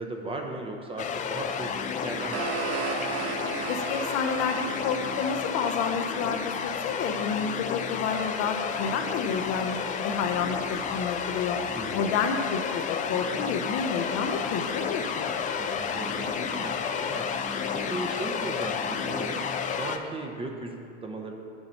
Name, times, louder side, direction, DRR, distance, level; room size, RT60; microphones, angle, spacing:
voice 1, 0.0-3.1 11.8-12.1 15.5-21.3, right 2 dB, 15° right, 2 dB, 0.8 m, -37 dB
sound 1, 1.0-20.0, left 6 dB, 25° left, 0.4 m, -31 dB
sound 2, 1.9-7.0, right 8 dB, 75° right, 0.6 m, -37 dB
voice 2, 3.7-11.6 11.9-15.3, left 6 dB, 45° left, 5 dB, 0.7 m, -30 dB
7.2 x 4.0 x 6.7 m, 2.5 s
hypercardioid pair, 90°, 33 cm